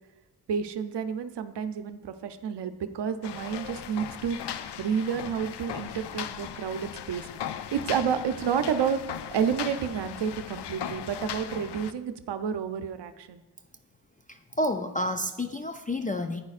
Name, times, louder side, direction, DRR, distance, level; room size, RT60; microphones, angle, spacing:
voice 1, 0.5-7.3 7.7-9.0 9.3-13.4, right 7 dB, 85° right, 10 dB, 0.6 m, -30 dB
sound 1, 3.2-11.9, left 9 dB, 80° left, 0.5 m, -38 dB
voice 2, 14.3-16.4, left 1 dB, 20° left, 6 dB, 0.3 m, -30 dB
10.5 x 8.9 x 2.4 m, 1.0 s
wide cardioid pair, 90°, 41 cm